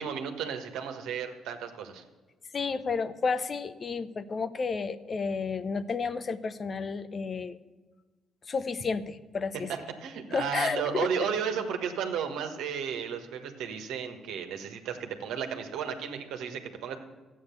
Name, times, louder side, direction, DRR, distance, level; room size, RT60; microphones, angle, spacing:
voice 1, 0.0-2.0 10.0-17.0, right 7 dB, 75° right, 5 dB, 1.4 m, -33 dB
voice 2, 2.5-7.6 8.5-9.7 10.3-11.2, left 5 dB, 45° left, 13 dB, 0.8 m, -31 dB
13.0 x 8.5 x 6.9 m, 1.3 s
hypercardioid pair, 50°, 0 cm